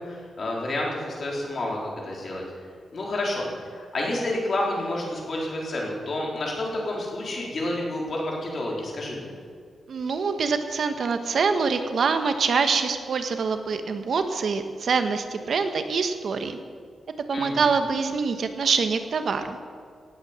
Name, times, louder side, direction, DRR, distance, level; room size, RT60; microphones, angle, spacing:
voice 1, 0.0-2.4 2.9-9.3 17.3-17.6, left 1 dB, 45° left, -2 dB, 4.0 m, -29 dB
voice 2, 9.9-16.6 17.3-19.6, right 5 dB, 55° right, 8 dB, 1.1 m, -25 dB
18.0 x 8.6 x 7.4 m, 2.2 s
wide cardioid pair, 140°, 0 cm